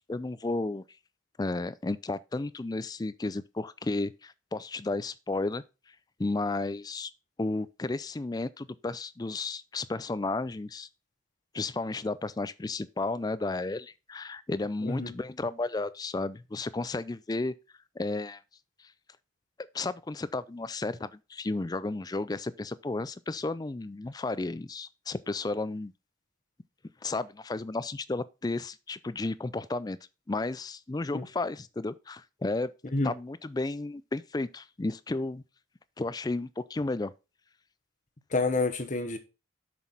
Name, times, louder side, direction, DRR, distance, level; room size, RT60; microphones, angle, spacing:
voice 1, 0.1-0.8 1.4-5.6 6.2-7.1 7.4-10.9 11.5-17.5 18.0-18.4 19.7-25.9 27.0-30.0 30.3-32.7 33.0-35.4 36.0-37.1, left 2 dB, 20° left, 0.4 m, -33 dB
voice 2, 38.3-39.2, left 2 dB, 40° left, 1.0 m, -28 dB
7.2 x 6.2 x 3.9 m
head